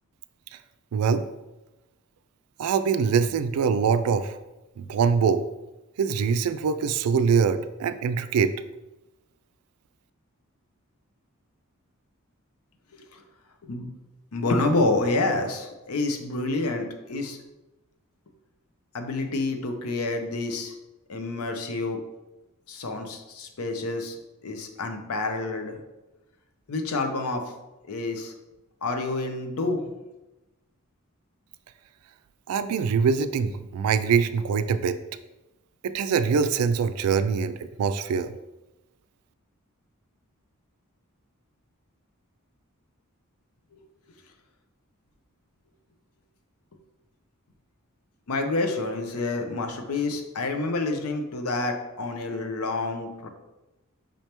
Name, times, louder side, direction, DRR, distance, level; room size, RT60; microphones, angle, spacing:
voice 1, 0.9-1.3 2.6-4.4 4.8-5.4 6.0-8.5 32.5-35.0 35.8-38.3, right 6 dB, 85° right, 12 dB, 0.3 m, -23 dB
voice 2, 14.3-17.4 18.9-20.8 21.1-22.0 22.7-24.2 24.4-25.8 26.7-27.5 27.9-28.3 28.8-29.9 43.7-43.8 48.3-53.3, left 2 dB, 85° left, 5 dB, 0.6 m, -28 dB
5.2 x 3.3 x 2.9 m, 1.0 s
head